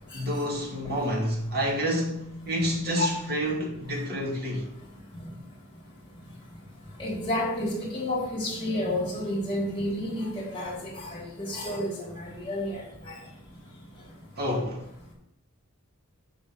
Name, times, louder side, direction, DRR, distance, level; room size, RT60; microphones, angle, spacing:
voice 1, 0.1-4.7 14.4-14.9, equal, 45° right, 2.3 m, -29 dB
voice 2, 7.0-12.8, left 1 dB, 20° left, 3.6 m, -30 dB
6.8 x 5.5 x 6.9 m
head